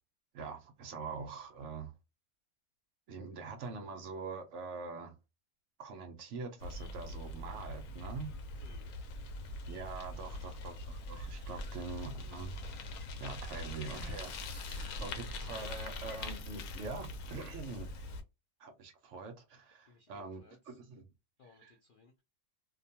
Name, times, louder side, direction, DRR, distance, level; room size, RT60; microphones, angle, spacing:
voice 1, 0.3-1.9 3.1-5.1 5.8-8.3 9.7-12.6 13.2-17.9 18.6-21.1 21.6-21.7, right 4 dB, 65° right, 0.8 m, -44 dB
Bicycle, 6.6-18.2, left 2 dB, 90° left, 1.1 m, -43 dB
voice 2, 8.6-8.9 10.3-10.6 11.7-11.8 14.7-14.9 19.9-20.8 21.4-22.2, left 3 dB, 75° left, 0.4 m, -62 dB
2.5 x 2.2 x 2.7 m
omnidirectional pair, 1.5 m